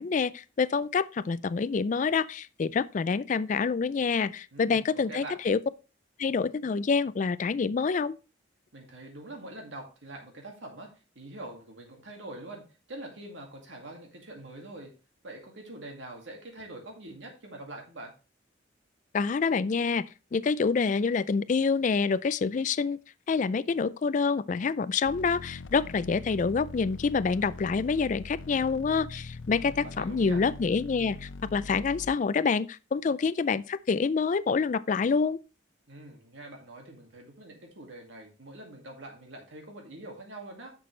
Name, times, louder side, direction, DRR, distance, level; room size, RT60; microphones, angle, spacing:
voice 1, 0.0-5.6 6.2-8.2 19.1-20.0 20.3-23.0 23.3-35.4, left 5 dB, 40° left, 0.3 m, -27 dB
voice 2, 4.5-5.4 8.7-10.9 11.2-12.6 12.9-14.9 15.2-18.1 29.5-30.4 35.9-40.7, right 1 dB, 75° right, 2.1 m, -44 dB
sound 1, 25.0-32.2, left 3 dB, 85° left, 0.6 m, -43 dB
10.0 x 6.0 x 3.2 m
head